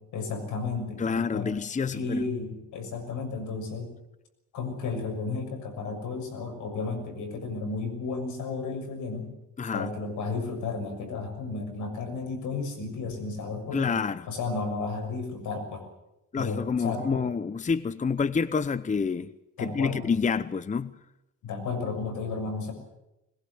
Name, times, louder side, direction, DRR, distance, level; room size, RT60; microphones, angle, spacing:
voice 1, 0.1-1.5 1.9-3.9 4.5-9.3 9.7-14.0 14.3-15.8 16.4-17.2 19.6-20.0 21.4-22.7, left 4 dB, 80° left, 5 dB, 6.7 m, -33 dB
voice 2, 1.0-2.2 9.6-9.9 13.7-14.3 16.3-19.3 19.6-20.9, left 5 dB, 25° left, 15 dB, 0.8 m, -28 dB
21.5 x 21.0 x 8.0 m, 0.90 s
cardioid pair, 90°, 30 cm